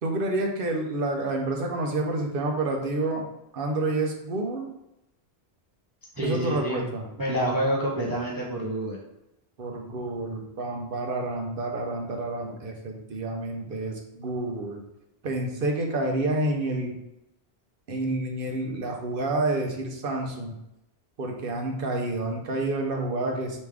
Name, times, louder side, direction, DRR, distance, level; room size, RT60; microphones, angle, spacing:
voice 1, 0.0-3.3 3.5-4.7 6.2-7.1 9.6-14.8 15.2-16.9 17.9-20.6 21.2-23.6, right 2 dB, 60° right, 2 dB, 0.9 m, -29 dB
voice 2, 6.2-6.8 7.2-9.0, right 1 dB, 25° right, -4 dB, 0.6 m, -27 dB
3.5 x 3.1 x 4.8 m, 0.86 s
omnidirectional pair, 1.1 m